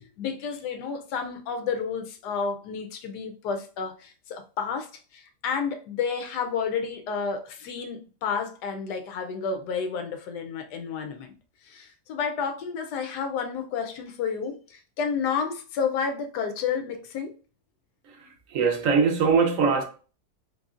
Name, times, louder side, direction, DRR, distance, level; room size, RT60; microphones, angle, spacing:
voice 1, 0.0-11.3 11.6-17.4, left 6 dB, 85° left, 1.2 m, -31 dB
voice 2, 18.0-19.8, right 5 dB, 65° right, 1.0 m, -22 dB
3.8 x 3.5 x 2.4 m
omnidirectional pair, 1.7 m